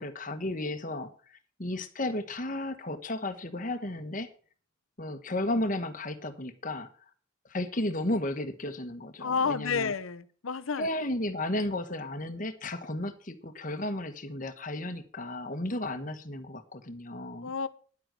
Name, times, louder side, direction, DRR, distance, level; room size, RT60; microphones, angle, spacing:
voice 1, 0.0-4.3 5.0-6.9 7.5-9.9 10.8-17.5, left 1 dB, 40° left, 9 dB, 1.3 m, -34 dB
voice 2, 9.2-10.9 17.4-17.7, left 5 dB, 85° left, 15 dB, 0.8 m, -30 dB
10.5 x 7.9 x 7.6 m, 0.43 s
head